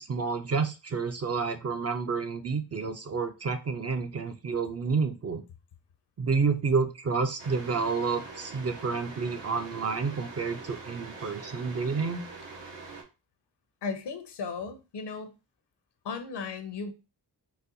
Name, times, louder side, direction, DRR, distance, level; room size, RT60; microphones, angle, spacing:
voice 1, 0.0-5.4 6.2-12.2, right 5 dB, 35° right, 7 dB, 0.4 m, -29 dB
sound 1, 7.4-13.0, right 3 dB, 80° right, 1.0 m, -44 dB
voice 2, 13.8-15.3 16.0-16.9, left 5 dB, 70° left, 9 dB, 0.7 m, -36 dB
4.0 x 2.2 x 2.6 m, 0.29 s
wide cardioid pair, 75°, 43 cm